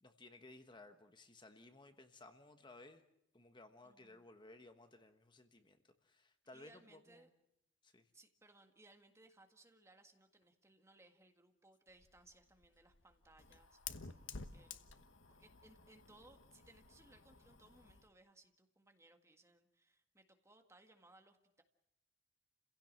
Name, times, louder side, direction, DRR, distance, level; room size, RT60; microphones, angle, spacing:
voice 1, 0.0-3.0 3.3-7.3 7.8-8.1, left 2 dB, 25° left, 7 dB, 1.2 m, -59 dB
voice 2, 3.8-4.3 6.5-7.3 8.1-14.2 14.5-14.9 15.4-21.6, right 2 dB, 15° right, 5 dB, 1.8 m, -65 dB
Fire, 11.9-18.1, left 5 dB, 80° left, 1.2 m, -53 dB
29.5 x 16.5 x 7.6 m, 0.82 s
head